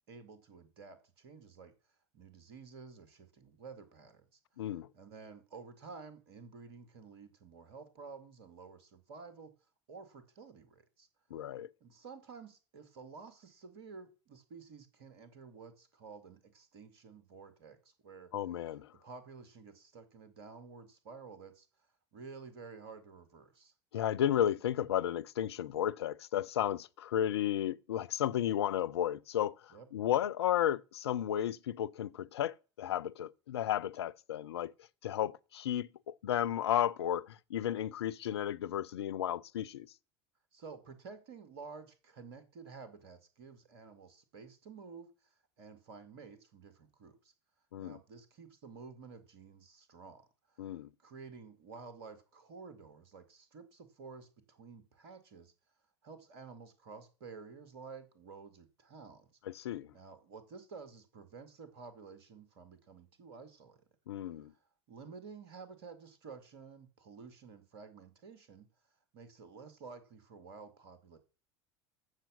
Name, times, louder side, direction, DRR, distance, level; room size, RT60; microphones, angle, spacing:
voice 1, 0.1-1.7 2.1-4.4 4.9-9.6 9.9-11.1 11.8-18.3 18.7-18.8 19.0-23.7 29.7-29.9 40.5-47.3 47.8-55.5 56.0-59.4 59.9-63.8 64.3-68.7 69.1-71.2, right 5 dB, 60° right, 2.1 m, -52 dB
voice 2, 4.6-4.9 11.3-11.7 18.3-18.9 23.9-34.7 35.0-39.9 47.7-48.0 50.6-50.9 59.5-59.9 64.1-64.5, left 11 dB, 70° left, 0.6 m, -33 dB
14.5 x 5.9 x 7.3 m
figure-of-eight pair, 70°, 14 cm